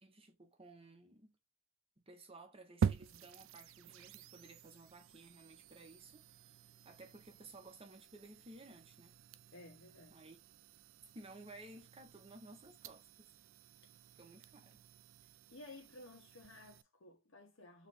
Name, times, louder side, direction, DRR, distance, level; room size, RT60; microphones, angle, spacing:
voice 1, 0.0-1.4 2.1-6.6 6.8-9.1 10.1-10.4 11.1-13.3 14.2-14.8, right 2 dB, 30° right, 0.8 m, -56 dB
sound 1, 2.8-16.8, right 7 dB, 70° right, 0.3 m, -46 dB
voice 2, 9.5-10.2 15.5-17.9, left 2 dB, 70° left, 1.3 m, -55 dB
3.3 x 3.0 x 4.1 m
head